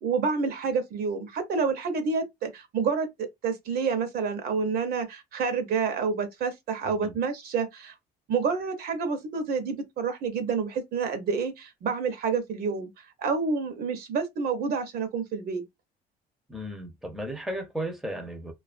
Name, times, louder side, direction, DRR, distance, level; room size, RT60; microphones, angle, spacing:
voice 1, 0.0-7.9 8.3-12.9 13.2-15.6, right 5 dB, 65° right, 0.8 m, -28 dB
voice 2, 16.5-18.5, right 1 dB, ahead, 0.6 m, -35 dB
2.4 x 2.3 x 2.4 m
cardioid pair, 110°, 17 cm